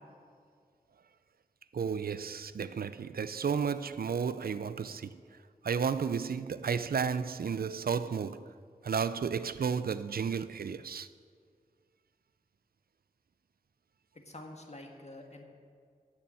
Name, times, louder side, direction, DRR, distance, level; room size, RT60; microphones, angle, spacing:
voice 1, 1.7-5.2 5.6-8.5 8.8-11.1, right 6 dB, 80° right, 0.4 m, -33 dB
voice 2, 14.3-15.4, left 2 dB, 45° left, 1.7 m, -47 dB
14.0 x 7.1 x 7.6 m
wide cardioid pair, 80°, 15 cm